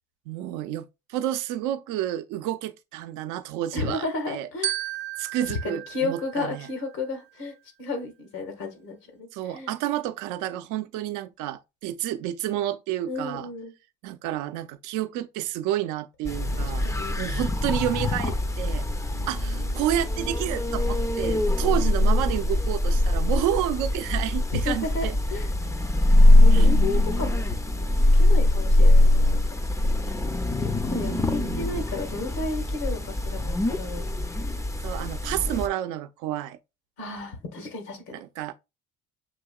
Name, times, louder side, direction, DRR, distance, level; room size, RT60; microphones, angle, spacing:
voice 1, 0.3-4.5 5.2-6.7 9.3-13.5 14.0-16.9 17.2-18.8 19.3-25.2 26.5-26.7 30.9-31.8 34.8-36.6 38.1-38.5, right 12 dB, 85° right, 0.5 m, -30 dB
voice 2, 3.7-4.7 5.4-9.7 13.1-13.7 16.5-17.1 19.1-19.8 24.5-25.5 26.4-29.4 30.1-30.2 30.5-34.4 37.0-38.0, left 3 dB, 90° left, 1.6 m, -33 dB
Glockenspiel, 4.6-7.1, right 12 dB, 40° right, 0.6 m, -34 dB
sound 1, 16.3-35.7, left 1 dB, 10° left, 0.4 m, -22 dB
7.1 x 2.8 x 2.3 m
supercardioid pair, 75°, 30 cm